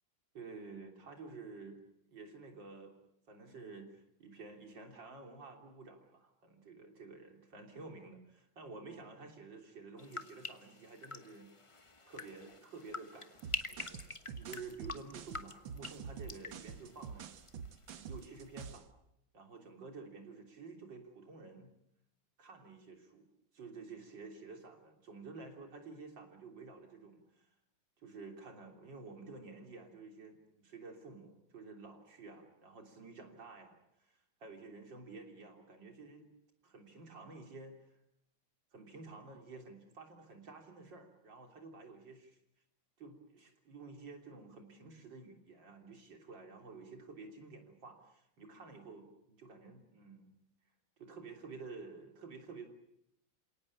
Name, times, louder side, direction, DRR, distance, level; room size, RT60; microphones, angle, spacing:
voice 1, 0.3-1.8 2.1-2.9 3.3-11.5 12.0-17.3 17.9-18.9 19.3-21.7 22.4-23.3 23.5-27.5 28.0-36.3 36.6-37.8 38.7-42.4 43.0-50.3 51.0-52.7, right 4 dB, 70° right, 3 dB, 4.0 m, -51 dB
sound 1, 10.0-17.9 18.2-18.7, left 3 dB, 20° left, 0.9 m, -46 dB
sound 2, 13.4-18.9, right 7 dB, 90° right, 1.9 m, -47 dB
28.0 x 18.0 x 8.6 m, 0.80 s
omnidirectional pair, 2.1 m